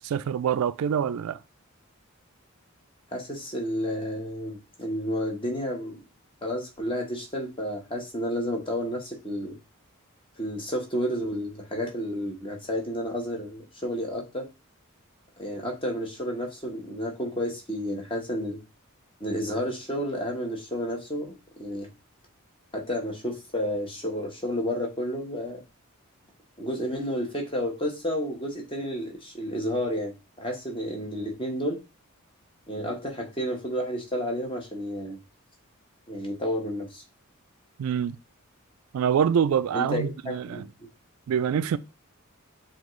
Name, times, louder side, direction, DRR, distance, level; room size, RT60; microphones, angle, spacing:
voice 1, 0.0-1.4 37.8-38.2 38.9-40.6 41.3-41.8, right 8 dB, 80° right, 0.3 m, -25 dB
voice 2, 3.1-6.0 6.4-9.6 10.4-14.5 15.4-18.6 19.2-21.3 21.6-21.9 22.7-25.6 26.6-31.8 32.7-35.2 36.1-37.0 39.7-40.6, equal, 25° left, 1.0 m, -31 dB
7.2 x 2.4 x 3.1 m
head